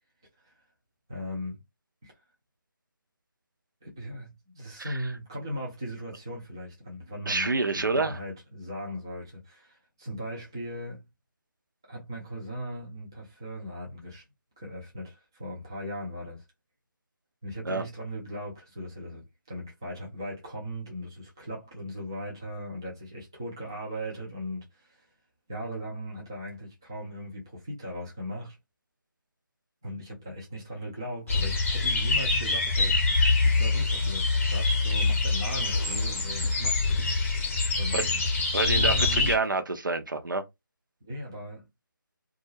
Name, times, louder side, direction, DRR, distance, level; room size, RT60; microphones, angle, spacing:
voice 1, 1.1-1.6 2.0-2.1 3.8-7.5 7.8-11.1 11.9-14.2 14.6-16.4 17.4-25.1 25.5-28.6 29.8-33.0 33.4-37.0 37.3-38.2 38.7-39.3 41.0-41.7, equal, 10° right, 0.3 m, -38 dB
voice 2, 7.3-8.2 17.7-17.8 37.9-38.0 38.5-40.4, right 3 dB, 65° right, 0.6 m, -27 dB
sound 1, 31.3-39.4, left 3 dB, 35° left, 0.7 m, -25 dB
2.3 x 2.1 x 3.0 m
figure-of-eight pair, 160°, 11 cm